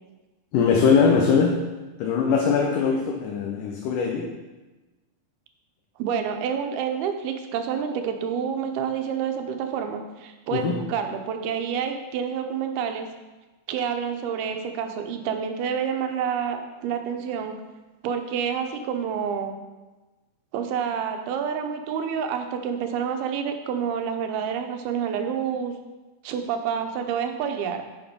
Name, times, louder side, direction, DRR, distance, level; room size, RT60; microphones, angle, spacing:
voice 1, 0.5-1.6 2.0-4.3 10.5-10.8, left 5 dB, 70° left, 1 dB, 2.2 m, -21 dB
voice 2, 6.0-13.1 13.7-17.6 18.0-19.6 20.5-25.8 26.2-27.8, right 7 dB, 85° right, 6 dB, 2.8 m, -28 dB
9.3 x 7.0 x 5.2 m, 1.2 s
omnidirectional pair, 4.4 m